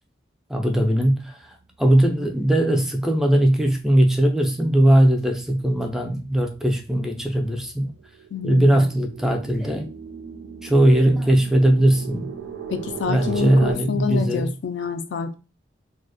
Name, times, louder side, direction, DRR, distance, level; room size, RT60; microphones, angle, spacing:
voice 1, 0.5-7.9 8.4-9.9 10.6-12.3 13.1-14.5, right 1 dB, 5° right, 0.3 m, -19 dB
sound 1, 5.4-13.7, right 7 dB, 80° right, 0.5 m, -37 dB
voice 2, 8.3-8.9 12.7-15.3, left 6 dB, 85° left, 0.4 m, -28 dB
2.3 x 2.0 x 2.6 m
head